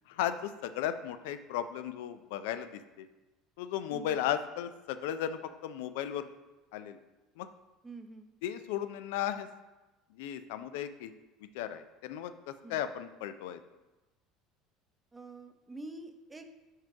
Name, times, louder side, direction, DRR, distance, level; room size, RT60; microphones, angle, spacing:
voice 1, 0.1-3.1 3.6-6.3 6.7-7.0 7.4-7.5 8.4-9.5 10.1-11.1 11.5-13.6, left 10 dB, 80° left, 11 dB, 0.4 m, -35 dB
voice 2, 3.9-4.2 7.8-8.3 12.6-12.8 15.1-16.5, right 2 dB, 15° right, 7 dB, 0.6 m, -46 dB
4.5 x 4.5 x 4.7 m, 1.1 s
supercardioid pair, 95°, 0 cm